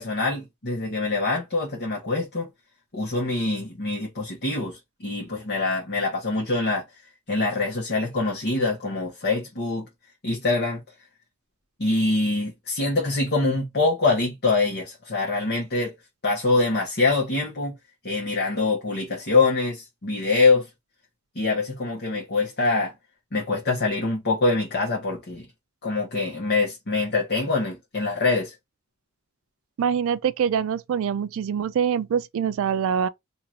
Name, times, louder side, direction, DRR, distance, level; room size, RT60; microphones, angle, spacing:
voice 1, 0.0-2.5 2.9-6.8 7.3-9.9 10.2-10.8 11.8-15.9 16.2-17.7 18.0-20.7 21.3-22.9 23.3-25.5 25.8-28.5, left 3 dB, 50° left, 1.1 m, -24 dB
voice 2, 29.8-33.1, right 7 dB, 65° right, 0.3 m, -24 dB
2.9 x 2.5 x 4.3 m
head